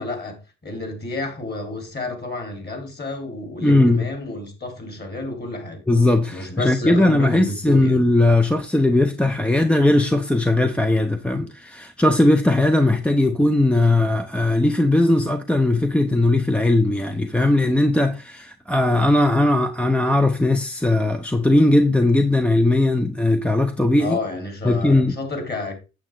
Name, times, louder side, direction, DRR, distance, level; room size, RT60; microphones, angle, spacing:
voice 1, 0.0-5.8 6.3-8.0 24.0-25.8, left 2 dB, 35° left, 3.9 m, -30 dB
voice 2, 3.6-4.1 5.9-24.2 24.6-25.1, left 2 dB, 5° left, 0.7 m, -18 dB
8.9 x 7.6 x 3.7 m
cardioid pair, 90°, 30 cm